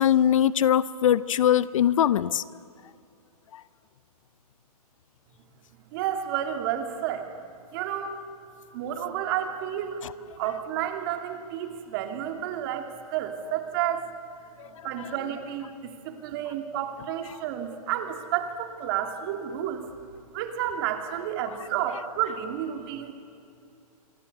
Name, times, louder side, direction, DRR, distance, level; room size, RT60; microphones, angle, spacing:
voice 1, 0.0-2.4 3.5-3.6, left 10 dB, 55° left, 18 dB, 0.7 m, -21 dB
voice 2, 5.9-7.3 7.7-8.2 8.7-10.0 10.4-14.1 14.6-19.8 20.3-23.1, right 10 dB, 35° right, 6 dB, 2.6 m, -31 dB
26.5 x 24.0 x 6.8 m, 2.5 s
hypercardioid pair, 150°, 20 cm